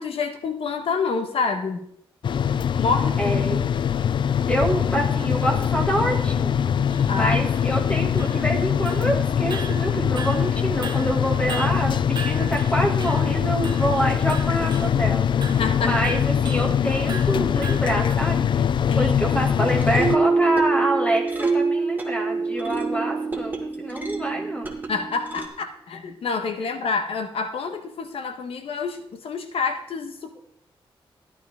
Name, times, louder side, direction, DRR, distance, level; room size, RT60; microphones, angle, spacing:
voice 1, 0.0-1.8 2.7-3.6 7.1-7.5 15.6-16.0 18.9-19.1 24.9-30.4, left 4 dB, 85° left, 7 dB, 1.3 m, -28 dB
sound 1, 2.2-20.2, left 8 dB, 55° left, 0.4 m, -23 dB
voice 2, 3.2-3.7 4.5-6.7 7.1-24.7, right 1 dB, 15° left, 2 dB, 2.2 m, -26 dB
sound 2, 4.6-4.7 5.2-5.3 5.9-6.0 6.2-6.3 6.9-7.1 7.5-8.6 8.9-9.2 9.5-10.6 10.8-13.3 13.6-14.0 14.3-15.0 15.4-15.7 16.0-16.7 17.1-18.2, right 5 dB, 50° right, 1.1 m, -38 dB
sound 3, 19.5-25.5, right 4 dB, 20° right, 1.7 m, -25 dB
13.5 x 11.0 x 3.6 m, 0.70 s
wide cardioid pair, 135°, 10 cm